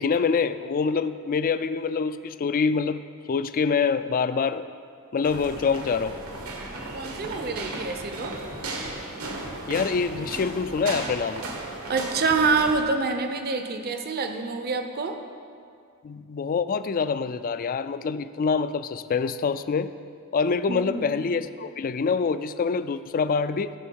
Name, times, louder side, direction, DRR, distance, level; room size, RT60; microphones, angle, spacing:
voice 1, 0.0-4.7 5.1-6.2 9.7-11.4 16.0-19.9 20.3-23.7, left 5 dB, 40° left, 13 dB, 0.3 m, -25 dB
sound 1, 5.2-12.8, right 2 dB, 80° right, 1.5 m, -35 dB
voice 2, 6.9-8.3 11.9-15.2 20.7-21.1, right 4 dB, 45° right, 6 dB, 0.7 m, -26 dB
16.0 x 6.3 x 4.6 m, 2.3 s
head